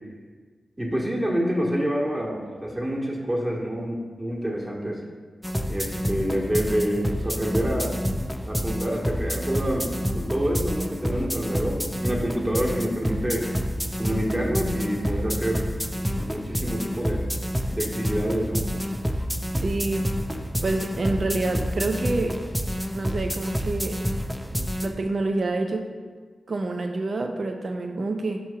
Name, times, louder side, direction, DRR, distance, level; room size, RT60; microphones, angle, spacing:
voice 1, 0.8-5.0 5.7-8.0 8.5-13.5 14.0-15.7 16.2-17.2 17.7-18.7, equal, 25° right, -3 dB, 1.3 m, -27 dB
sound 1, 5.4-24.9, equal, ahead, 0.5 m, -28 dB
voice 2, 19.6-20.1 20.6-22.4 22.9-24.0 24.8-25.8 26.5-28.4, right 2 dB, 55° right, 5 dB, 0.5 m, -27 dB
6.0 x 3.0 x 5.6 m, 1.5 s
cardioid pair, 50°, 0 cm